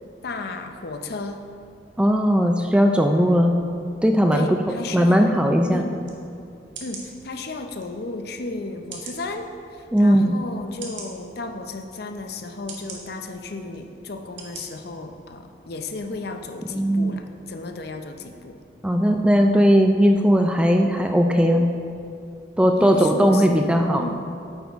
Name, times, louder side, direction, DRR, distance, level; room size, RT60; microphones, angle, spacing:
voice 1, 0.2-1.4 4.3-5.4 5.7-5.9 6.8-18.6 22.8-24.2, left 2 dB, 55° left, 6 dB, 0.6 m, -34 dB
voice 2, 2.0-3.6 4.0-4.5 4.9-5.8 9.9-10.4 16.7-17.2 18.8-21.7 22.6-24.0, equal, 5° right, 4 dB, 0.3 m, -18 dB
sound 1, 6.0-6.2 6.7-7.1 7.8-7.9 8.9-9.2 9.9-10.0 10.8-11.1 11.9-12.0 12.7-13.0 13.7-13.8 14.4-14.6 15.1-15.2, right 5 dB, 80° right, 1.5 m, -38 dB
9.4 x 8.0 x 3.5 m, 2.5 s
head